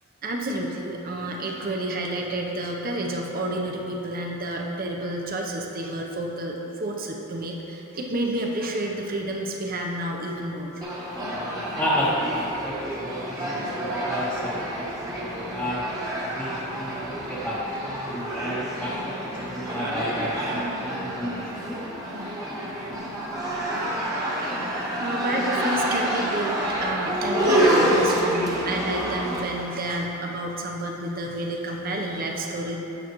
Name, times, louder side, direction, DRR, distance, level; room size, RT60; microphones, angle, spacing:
voice 1, 0.2-10.7 24.5-24.6 25.0-32.8, right 1 dB, 45° right, 0 dB, 0.8 m, -30 dB
sound 1, 10.8-29.4, right 1 dB, 15° right, 1.1 m, -28 dB
voice 2, 11.7-12.8 13.0-14.9 15.2-15.9 16.3-21.8, equal, 5° left, -9 dB, 0.8 m, -31 dB
8.9 x 7.2 x 3.1 m, 3.0 s
head